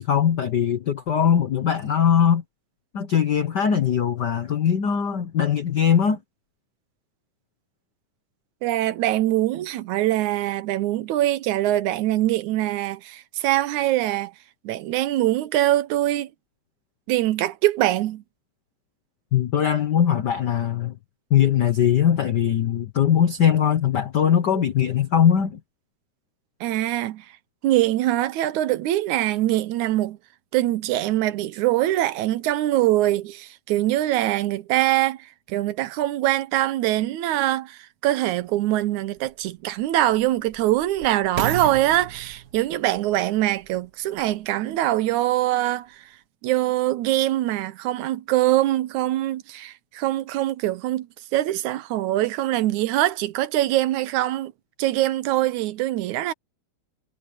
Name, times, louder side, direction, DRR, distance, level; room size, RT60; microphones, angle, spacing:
voice 1, 0.0-2.4 2.9-6.2 19.3-20.9 21.3-25.6, left 8 dB, 80° left, 0.9 m, -20 dB
voice 2, 8.6-14.3 14.6-16.3 17.1-18.2 26.6-27.3 27.6-30.2 30.5-46.2 46.4-51.1 51.3-54.5 54.8-56.3, right 15 dB, 80° right, 2.2 m, -23 dB
sound 1, 38.3-38.4 39.2-44.5 45.1-45.2, right 8 dB, 50° right, 1.2 m, -35 dB
omnidirectional pair, 3.4 m